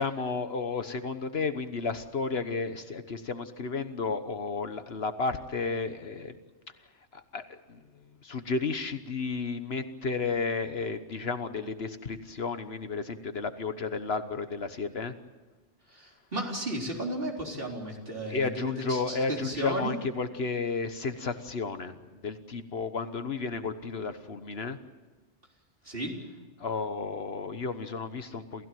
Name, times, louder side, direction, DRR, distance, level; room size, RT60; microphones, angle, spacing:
voice 1, 0.0-6.4 7.1-7.8 8.2-15.1 18.3-22.0 22.2-24.8 26.6-28.7, left 4 dB, 60° left, 10 dB, 1.4 m, -32 dB
voice 2, 15.9-19.9 25.8-26.1, right 1 dB, 50° right, 0 dB, 4.3 m, -34 dB
28.5 x 16.0 x 9.2 m, 1.3 s
omnidirectional pair, 1.2 m